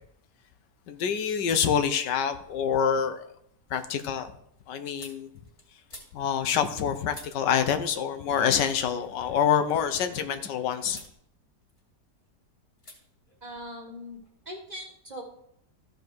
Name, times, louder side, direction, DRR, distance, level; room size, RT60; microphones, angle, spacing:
voice 1, 0.9-3.3 3.7-4.3 4.7-5.3 6.1-11.0, left 8 dB, 85° left, 10 dB, 1.4 m, -26 dB
sound 1, 3.6-8.2 8.4-10.5 10.9-11.2 11.5-12.3 12.8-13.0 13.2-14.3, left 1 dB, 45° left, 3.5 m, -52 dB
voice 2, 13.4-14.2 14.4-15.2, equal, 25° right, 0 dB, 1.4 m, -40 dB
14.0 x 5.3 x 4.6 m, 0.71 s
omnidirectional pair, 1.8 m